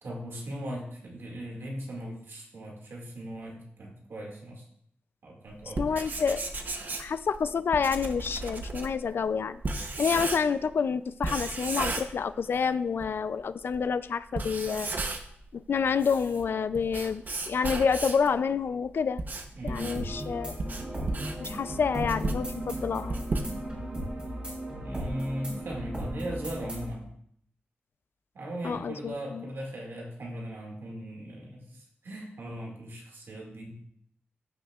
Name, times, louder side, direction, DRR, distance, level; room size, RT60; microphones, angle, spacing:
voice 1, 0.0-4.6 5.2-5.8 19.5-20.0 24.8-27.1 28.3-33.8, equal, 70° right, -1 dB, 2.1 m, -38 dB
Writing, 5.6-10.7 11.2-12.7 13.0-13.1 13.7-13.8 14.2-15.4 15.8-18.3 18.9-23.9, right 2 dB, 50° right, 0.8 m, -34 dB
voice 2, 5.8-6.4 7.0-14.9 15.5-19.2 19.6-20.6 21.4-23.2 28.6-29.4, left 6 dB, 65° left, 14 dB, 0.4 m, -28 dB
sound 1, 19.8-26.9, right 1 dB, 25° right, 3.5 m, -36 dB
15.0 x 6.2 x 2.4 m, 0.69 s
wide cardioid pair, 150°, 4 cm